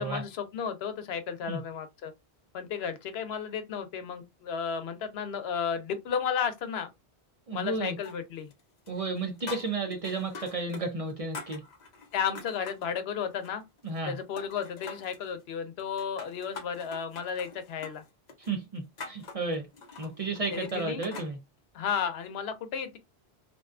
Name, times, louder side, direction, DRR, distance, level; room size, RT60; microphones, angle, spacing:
voice 1, 0.0-2.1 2.5-6.9 7.5-8.5 12.1-13.6 14.1-18.0 20.5-21.0 21.7-23.0, left 7 dB, 90° left, 0.8 m, -33 dB
voice 2, 7.5-8.0 8.9-11.6 13.8-14.2 18.5-19.7 20.0-21.4, right 3 dB, 45° right, 0.5 m, -32 dB
sound 1, 8.0-8.6 8.9-10.8 11.1-12.9 13.3-14.1 14.4-15.2 15.8-21.3, left 4 dB, 50° left, 0.7 m, -45 dB
2.5 x 2.2 x 2.4 m
omnidirectional pair, 1.0 m